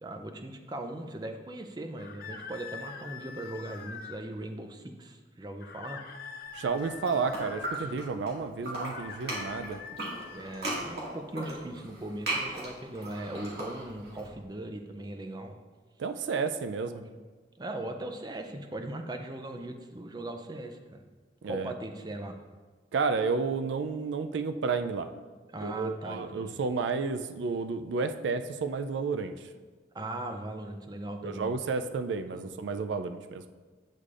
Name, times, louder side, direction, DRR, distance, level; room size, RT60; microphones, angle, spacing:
voice 1, 0.0-6.0 10.3-15.6 16.9-17.1 17.6-21.0 21.4-22.4 25.5-26.6 29.9-31.5 32.3-32.4, right 1 dB, 25° right, 6 dB, 0.5 m, -39 dB
sound 1, 2.0-4.2 5.6-7.8 8.8-10.8, left 6 dB, 50° left, 0.4 m, -44 dB
voice 2, 6.5-9.8 16.0-17.0 21.4-21.7 22.9-25.1 25.6-29.3 31.2-33.4, right 4 dB, 85° right, 9 dB, 0.4 m, -31 dB
sound 2, 6.7-8.3 8.6-14.2, right 1 dB, 60° right, 1.9 m, -36 dB
8.3 x 6.4 x 2.5 m, 1.4 s
head